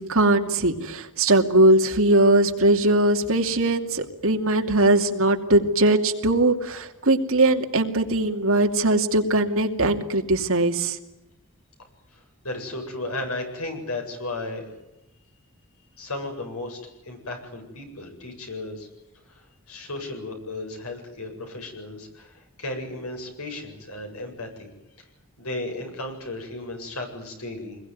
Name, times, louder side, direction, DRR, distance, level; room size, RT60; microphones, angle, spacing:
voice 1, 0.0-11.0, right 2 dB, 65° right, 4 dB, 2.6 m, -20 dB
voice 2, 12.1-14.6 16.0-16.8 17.0-18.9 19.3-24.7 25.4-27.8, left 2 dB, 85° left, 4 dB, 7.9 m, -34 dB
26.0 x 21.5 x 9.6 m, 0.93 s
head